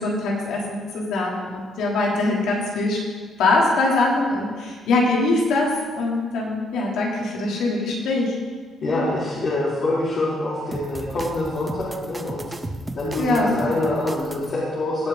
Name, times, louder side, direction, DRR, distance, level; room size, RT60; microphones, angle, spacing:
voice 1, 0.0-3.0 3.4-8.4 8.9-9.0 13.2-13.6, left 2 dB, 85° left, -3 dB, 3.3 m, -22 dB
voice 2, 8.8-12.5 12.9-15.1, left 2 dB, 55° left, -11 dB, 4.6 m, -25 dB
sound 1, 10.7-14.5, right 2 dB, 20° right, 0.8 m, -35 dB
18.0 x 8.5 x 4.0 m, 1.5 s
cardioid pair, 90°, 0 cm